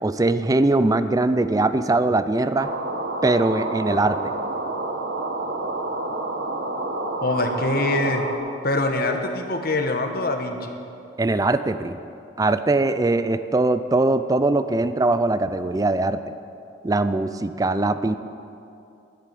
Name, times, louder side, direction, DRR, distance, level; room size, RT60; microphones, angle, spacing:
voice 1, 0.0-2.7 3.2-4.3 11.2-12.0 12.4-16.2 16.8-18.1, right 2 dB, 20° right, 12 dB, 0.4 m, -21 dB
sound 1, 2.6-8.4, right 2 dB, 75° right, 1.2 m, -29 dB
voice 2, 7.2-8.3 8.6-10.8, left 2 dB, 60° left, 5 dB, 1.2 m, -24 dB
10.5 x 8.5 x 9.3 m, 2.6 s
head